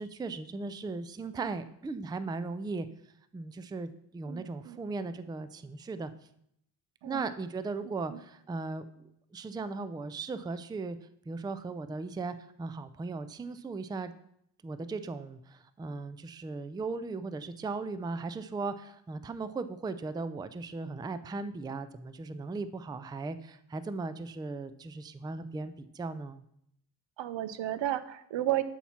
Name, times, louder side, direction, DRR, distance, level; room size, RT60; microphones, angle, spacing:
voice 1, 0.0-2.9 3.3-6.1 7.0-8.8 9.3-11.0 11.3-14.1 14.6-26.4, right 3 dB, 10° right, 13 dB, 0.3 m, -37 dB
voice 2, 4.3-4.8 7.0-7.2 8.1-8.2 27.2-28.6, right 13 dB, 85° right, 13 dB, 0.8 m, -33 dB
11.5 x 4.3 x 5.7 m, 0.73 s
cardioid pair, 115°, 43 cm